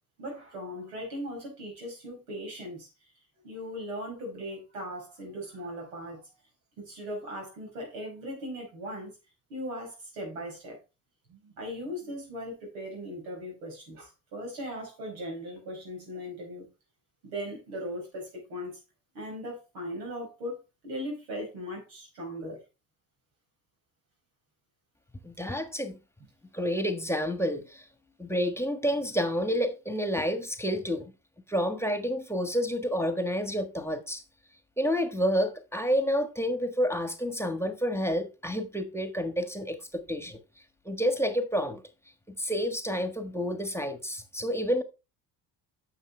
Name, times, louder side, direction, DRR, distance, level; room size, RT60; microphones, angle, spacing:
voice 1, 0.2-2.9 3.4-6.2 6.8-9.1 9.5-10.8 11.3-16.7 17.2-18.8 19.1-22.6, equal, 90° right, 5.4 m, -38 dB
voice 2, 25.2-26.0 26.5-27.8 28.2-31.1 31.5-34.2 34.8-40.4 40.8-41.8 42.3-44.8, equal, 5° left, 1.4 m, -29 dB
9.5 x 6.8 x 3.3 m
supercardioid pair, 70°, 45 cm